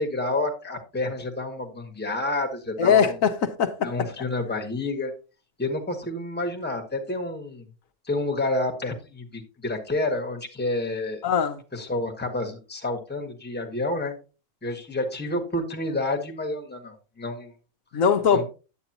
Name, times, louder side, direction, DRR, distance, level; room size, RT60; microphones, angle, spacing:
voice 1, 0.0-3.2 3.8-5.1 5.6-7.7 8.0-11.2 11.7-14.2 14.6-17.5 17.9-18.0 18.3-18.4, left 2 dB, 10° left, 1.2 m, -29 dB
voice 2, 2.8-3.9 11.2-11.6 17.9-18.4, left 7 dB, 70° left, 1.2 m, -21 dB
9.8 x 8.2 x 2.9 m
omnidirectional pair, 1.5 m